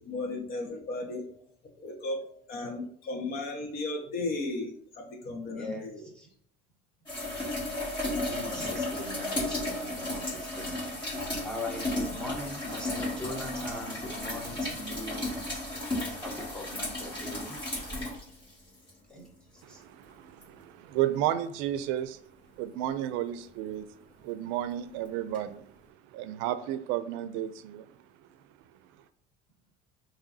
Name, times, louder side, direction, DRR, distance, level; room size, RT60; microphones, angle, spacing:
voice 1, 0.0-1.4 1.8-6.0, left 2 dB, 50° left, 2 dB, 1.2 m, -35 dB
voice 2, 5.5-6.3 8.2-15.4 16.2-17.6 19.1-19.8, left 1 dB, 5° left, -1 dB, 1.0 m, -41 dB
sound 1, 7.1-18.9 20.4-20.5 25.3-25.4, left 1 dB, 25° left, 2.1 m, -34 dB
voice 3, 19.6-22.2 22.6-25.7 26.1-28.0, right 12 dB, 80° right, 13 dB, 0.4 m, -32 dB
6.9 x 2.8 x 2.7 m, 0.63 s
cardioid pair, 155°, 20 cm